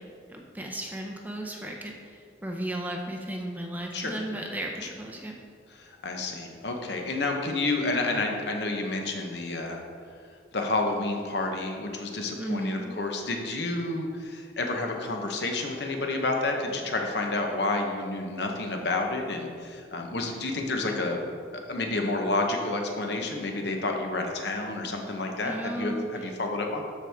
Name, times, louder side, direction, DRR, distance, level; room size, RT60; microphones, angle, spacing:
voice 1, 0.3-5.4 12.4-13.0 25.4-26.1, right 1 dB, 10° right, 1 dB, 0.5 m, -35 dB
voice 2, 5.7-9.8 10.5-21.2 21.5-26.8, left 2 dB, 65° left, 2 dB, 0.9 m, -30 dB
12.5 x 4.5 x 3.5 m, 2.2 s
head